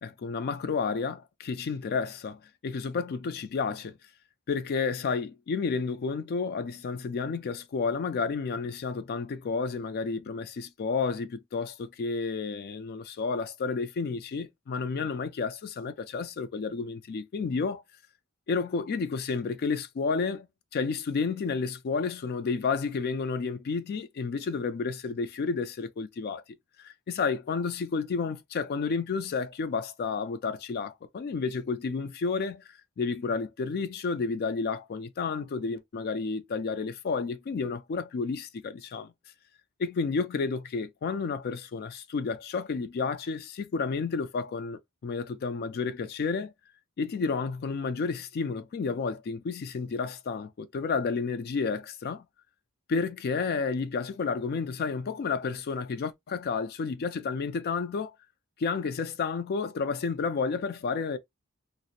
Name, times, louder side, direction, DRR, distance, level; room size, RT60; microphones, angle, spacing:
voice 1, 0.0-3.9 4.5-17.8 18.5-20.5 20.7-26.4 26.8-39.1 39.8-46.5 47.0-52.2 52.9-58.1 58.6-61.2, left 4 dB, 50° left, 0.4 m, -31 dB
2.4 x 2.0 x 2.6 m
head